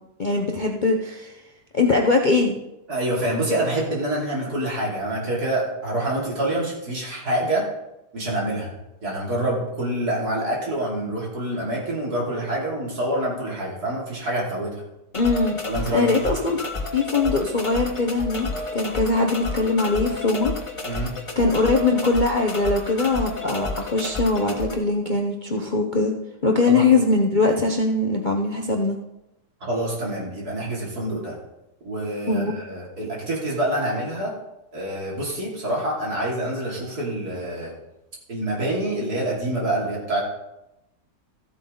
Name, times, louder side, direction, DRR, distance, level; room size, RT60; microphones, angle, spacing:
voice 1, 0.2-1.3 1.7-2.5 15.1-15.6 15.9-16.6 16.9-18.5 18.7-20.5 21.4-26.1 26.4-29.0 32.3-32.5, left 3 dB, 40° left, 1 dB, 0.8 m, -21 dB
voice 2, 2.9-7.7 8.1-8.7 9.0-14.8 15.7-16.3 20.9-21.1 26.7-26.8 29.6-31.4 31.8-34.4 34.7-37.7 38.3-40.2, right 1 dB, 65° right, -4 dB, 3.6 m, -26 dB
sound 1, 15.1-24.7, left 3 dB, 20° left, 1.1 m, -31 dB
14.5 x 8.1 x 3.9 m, 0.91 s
omnidirectional pair, 1.8 m